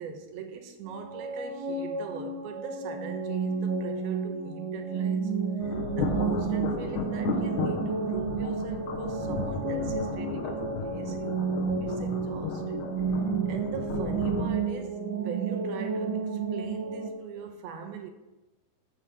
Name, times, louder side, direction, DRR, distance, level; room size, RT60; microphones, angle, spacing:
voice 1, 0.0-5.3 5.6-11.4 11.8-12.8 13.5-18.1, right 6 dB, 80° right, 2.9 m, -41 dB
sound 1, 0.9-17.1, right 5 dB, 65° right, 2.7 m, -31 dB
sound 2, 5.6-14.5, left 4 dB, 65° left, 2.8 m, -34 dB
13.5 x 6.6 x 6.5 m
omnidirectional pair, 4.3 m